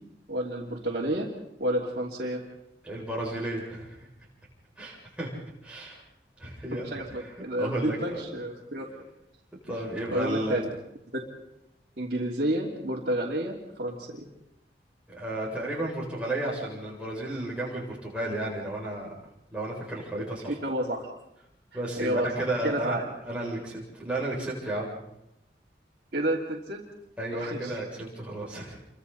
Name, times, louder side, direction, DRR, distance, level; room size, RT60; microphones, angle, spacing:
voice 1, 0.3-1.3 1.6-2.4 6.9-8.9 10.1-10.7 11.1-11.2 12.0-14.3 20.1-20.2 20.6-21.1 22.0-22.3 22.6-23.0 26.1-26.8 27.3-27.8, right 1 dB, 55° right, -7 dB, 3.0 m, -30 dB
voice 2, 2.8-4.1 4.8-5.3 5.6-6.0 6.4-7.3 7.6-8.2 9.6-10.7 15.1-19.1 19.5-20.6 21.7-23.0 23.2-24.9 27.2-28.8, right 1 dB, 5° right, -5 dB, 7.2 m, -33 dB
28.5 x 24.5 x 4.3 m, 0.83 s
head